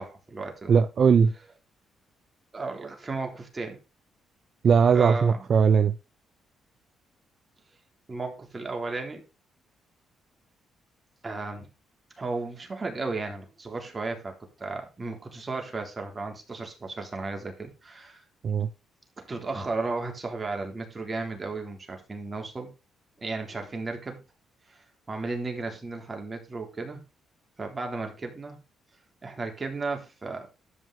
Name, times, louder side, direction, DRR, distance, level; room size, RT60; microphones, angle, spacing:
voice 1, 0.0-0.7 2.5-3.8 4.9-5.5 8.1-9.2 11.2-11.7 12.2-18.2 19.2-22.7 23.2-24.2 24.7-27.0 27.6-28.6 29.2-30.5, right 3 dB, 25° right, 3.7 m, -34 dB
voice 2, 0.7-1.3 4.6-5.9 18.4-18.7, right 6 dB, 55° right, 0.7 m, -19 dB
13.0 x 5.5 x 4.9 m
cardioid pair, 90°, 0 cm